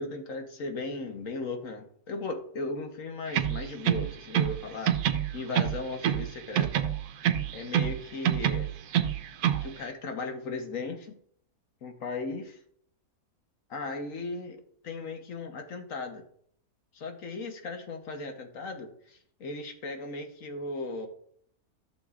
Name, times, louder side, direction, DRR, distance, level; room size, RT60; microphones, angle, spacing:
voice 1, 0.0-6.7 7.5-8.7 9.6-11.2 11.8-12.6 13.7-16.2 16.9-21.1, left 3 dB, 60° left, 4 dB, 1.5 m, -37 dB
sound 1, 3.3-4.6 4.9-6.3 6.6-8.0 8.2-9.7, right 10 dB, 90° right, 1.2 m, -26 dB
14.5 x 6.8 x 2.5 m, 0.65 s
omnidirectional pair, 1.6 m